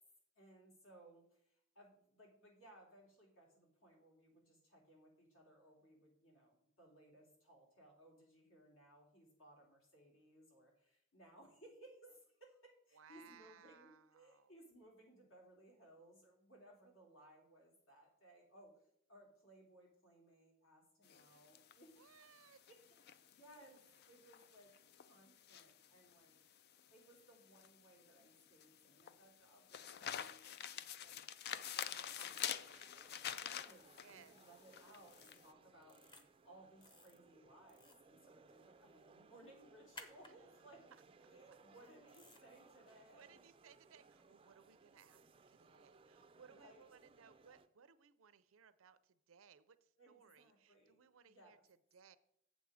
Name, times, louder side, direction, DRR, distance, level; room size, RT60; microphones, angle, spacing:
voice 1, 0.3-18.8 19.1-22.0 22.7-22.8 23.1-24.7 25.0-26.3 26.9-32.3 33.3-40.8 41.3-43.4 46.4-46.8 50.0-51.0 51.2-51.6, right 1 dB, 70° left, -1 dB, 2.9 m, -63 dB
voice 2, 12.9-14.5 22.0-22.6 31.7-33.0 34.0-34.4 43.1-52.2, right 7 dB, 75° right, 14 dB, 0.6 m, -64 dB
sound 1, 21.1-35.5, left 9 dB, 50° left, 0.4 m, -48 dB
sound 2, 31.9-47.7, right 4 dB, 25° right, 0.4 m, -66 dB
sound 3, 33.3-33.4 35.1-35.4 35.8-36.2 36.8-37.2 37.7-38.0 39.9-40.3 42.1-42.4, left 2 dB, 20° left, 0.9 m, -57 dB
8.0 x 6.6 x 4.9 m, 0.73 s
head